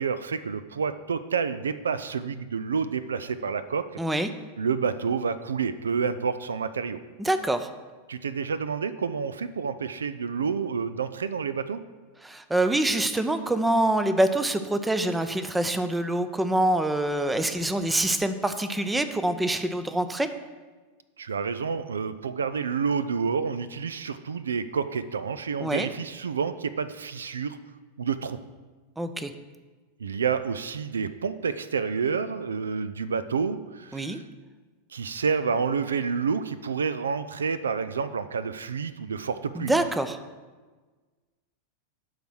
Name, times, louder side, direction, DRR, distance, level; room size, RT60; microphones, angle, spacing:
voice 1, 0.0-3.9 4.6-7.0 8.1-11.8 21.2-27.6 28.0-28.4 30.0-34.2 34.9-39.9, right 6 dB, 70° right, 13 dB, 0.4 m, -29 dB
voice 2, 4.0-4.3 7.2-7.7 12.2-20.3 25.6-25.9 29.0-29.3 33.9-34.2 39.5-40.2, right 1 dB, 5° right, 10 dB, 0.6 m, -25 dB
11.5 x 4.0 x 6.2 m, 1.3 s
figure-of-eight pair, 90°, 0 cm